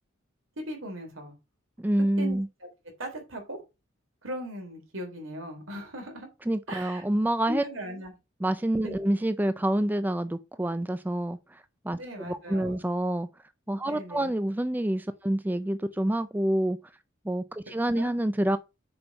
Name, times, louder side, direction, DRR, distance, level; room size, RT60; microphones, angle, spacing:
voice 1, 0.6-1.3 2.2-2.4 3.0-3.6 4.2-6.3 6.7-7.0 7.5-8.2 8.8-9.0 12.0-12.8 13.8-14.3 18.0-18.1, equal, 80° right, 3.6 m, -38 dB
voice 2, 1.8-2.5 6.5-7.6 8.4-11.4 11.8-12.0 12.2-13.3 13.7-16.8 17.3-18.6, right 1 dB, 10° right, 0.4 m, -27 dB
6.9 x 5.3 x 5.3 m
head